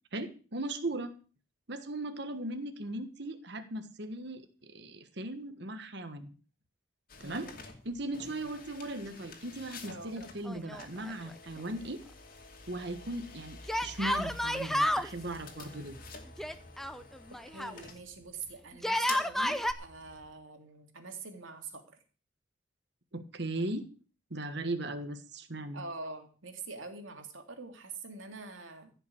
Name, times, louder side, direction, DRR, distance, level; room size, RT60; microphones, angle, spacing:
voice 1, 0.1-1.2 1.7-6.3 7.2-7.5 7.8-12.0 12.7-16.0 23.1-23.9 24.3-25.8, right 1 dB, 55° right, 8 dB, 1.4 m, -38 dB
sound 1, 7.1-20.3, left 4 dB, 45° left, 2.4 m, -49 dB
voice 2, 7.2-7.6 8.2-8.5 9.9-10.2 17.5-22.0 25.7-28.9, right 4 dB, 75° right, 4 dB, 2.7 m, -45 dB
Yell, 10.4-11.3 11.6-11.7 13.7-15.1 16.4-17.8 18.7-19.7, left 1 dB, ahead, 0.6 m, -31 dB
15.5 x 5.9 x 8.7 m, 0.38 s
head